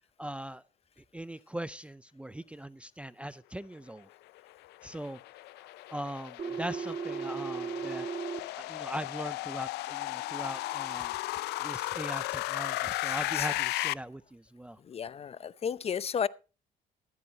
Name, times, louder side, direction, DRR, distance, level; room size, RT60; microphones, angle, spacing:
voice 1, 0.2-0.6 1.1-4.1 4.8-5.2 5.6-8.1 8.6-11.1 11.6-14.8, right 1 dB, 5° right, 0.5 m, -40 dB
sound 1, 4.4-13.9, left 18 dB, 80° left, 0.5 m, -35 dB
Telephone, 6.4-8.4, right 6 dB, 40° right, 1.9 m, -36 dB
voice 2, 13.1-13.5 14.8-16.3, left 7 dB, 35° left, 0.7 m, -34 dB
15.0 x 13.5 x 2.8 m
cardioid pair, 110°, 17 cm